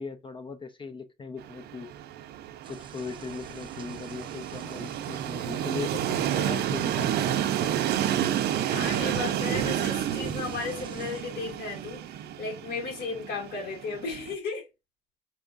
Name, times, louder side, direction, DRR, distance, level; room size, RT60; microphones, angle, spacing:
voice 1, 0.0-1.9 2.7-7.1, left 4 dB, 30° left, 0.6 m, -39 dB
Train, 1.4-14.4, right 10 dB, 70° right, 0.6 m, -30 dB
sound 1, 2.6-11.2, right 5 dB, 30° right, 0.7 m, -43 dB
voice 2, 8.7-14.7, left 4 dB, 65° left, 2.4 m, -35 dB
4.8 x 3.0 x 2.5 m
cardioid pair, 115°, 18 cm